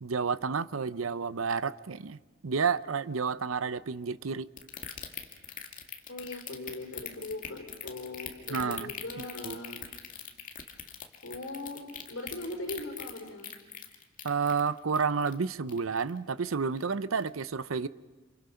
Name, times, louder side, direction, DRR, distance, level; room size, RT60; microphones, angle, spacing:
voice 1, 0.0-4.5 8.5-8.9 9.2-9.6 14.2-17.9, right 5 dB, 90° right, 0.7 m, -30 dB
sound 1, 4.6-16.2 16.5-16.8 17.2-17.3, left 8 dB, 40° left, 2.1 m, -41 dB
voice 2, 6.1-9.8 11.2-13.5, left 2 dB, 70° left, 4.6 m, -40 dB
28.0 x 28.0 x 5.8 m
head